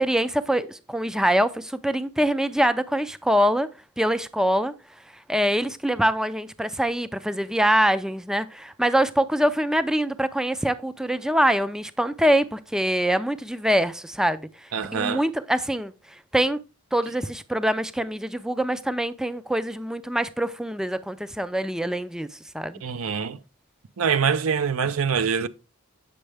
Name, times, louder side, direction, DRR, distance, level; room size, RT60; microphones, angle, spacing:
voice 1, 0.0-3.7 4.0-4.7 5.3-16.6 16.9-22.8, equal, 5° right, 0.4 m, -24 dB
voice 2, 14.7-15.2 22.8-23.4 24.0-25.5, right 6 dB, 75° right, 0.6 m, -24 dB
8.7 x 6.3 x 3.3 m
head